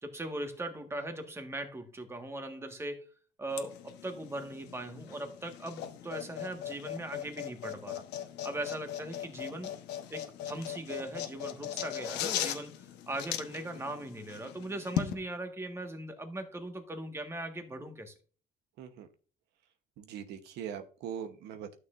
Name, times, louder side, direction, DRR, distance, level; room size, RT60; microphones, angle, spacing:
voice 1, 0.0-3.1 3.4-8.0 8.4-9.7 10.1-18.1, right 1 dB, 15° right, 1.6 m, -39 dB
sound 1, 3.5-15.1, left 11 dB, 85° left, 1.1 m, -39 dB
voice 2, 18.8-19.1 20.0-21.8, right 8 dB, 85° right, 1.0 m, -41 dB
12.0 x 6.5 x 2.6 m
cardioid pair, 110°, 17 cm